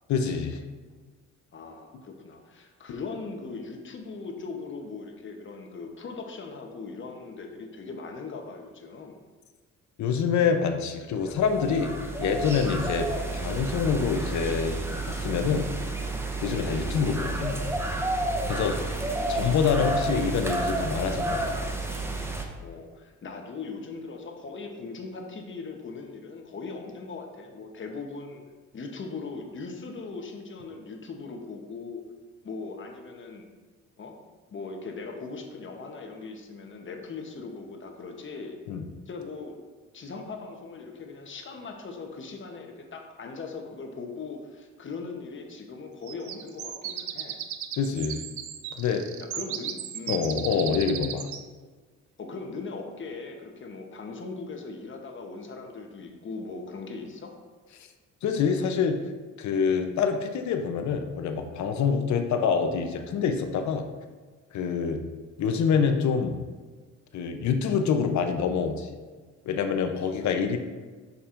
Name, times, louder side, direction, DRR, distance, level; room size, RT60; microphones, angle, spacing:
voice 1, 0.1-0.6 10.0-11.9 12.2-13.1 13.3-14.8 15.1-15.7 16.4-17.6 18.5-18.7 19.3-21.6 38.7-38.8 47.8-48.2 48.8-49.0 50.1-51.3 58.2-59.0 59.4-63.8 64.5-65.0 65.4-66.4 67.1-68.9 69.5-70.6, left 6 dB, 70° left, 6 dB, 0.7 m, -26 dB
voice 2, 1.5-9.1 18.5-19.1 22.6-28.4 28.7-32.0 32.4-33.5 34.0-34.2 34.5-38.6 39.1-39.6 39.9-47.4 49.2-50.3 52.2-57.3 70.1-70.4, left 4 dB, 40° left, 3 dB, 0.9 m, -39 dB
sound 1, 11.3-22.5, right 2 dB, 10° right, 0.7 m, -30 dB
sound 2, 46.1-51.5, right 10 dB, 75° right, 0.5 m, -36 dB
7.0 x 5.4 x 2.5 m, 1.4 s
cardioid pair, 90°, 30 cm